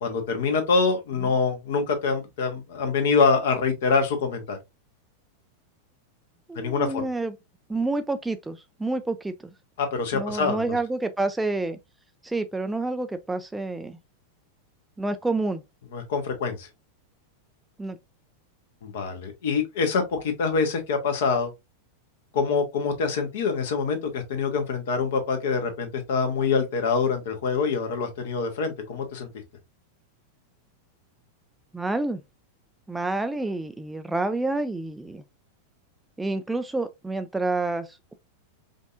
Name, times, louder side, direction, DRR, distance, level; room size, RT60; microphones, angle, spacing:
voice 1, 0.0-4.6 6.5-7.0 9.8-10.8 15.9-16.7 18.8-21.5 22.3-29.3, left 4 dB, 55° left, 1.0 m, -25 dB
voice 2, 6.5-7.4 7.7-9.3 10.1-11.8 12.2-14.0 15.0-15.6 17.8-18.0 31.7-32.2 32.9-35.2 36.2-38.1, right 2 dB, 5° right, 0.3 m, -28 dB
5.1 x 2.6 x 2.4 m
figure-of-eight pair, 90°, 0 cm